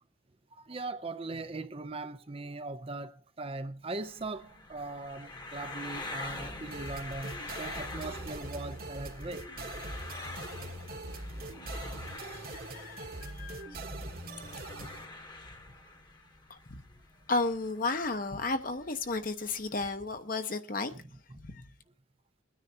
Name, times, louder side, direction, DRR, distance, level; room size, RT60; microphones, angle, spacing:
voice 1, 0.5-9.5 11.9-12.1 15.8-15.9 20.9-21.0 21.3-21.4, right 3 dB, 30° right, 0.5 m, -40 dB
sound 1, 3.9-19.9, left 2 dB, 20° left, 1.2 m, -45 dB
sound 2, 6.7-15.1, right 2 dB, 45° right, 1.3 m, -42 dB
voice 2, 12.2-13.8 16.5-16.8 17.3-20.9 21.5-21.6, left 3 dB, 45° left, 1.0 m, -33 dB
23.0 x 9.8 x 2.8 m
head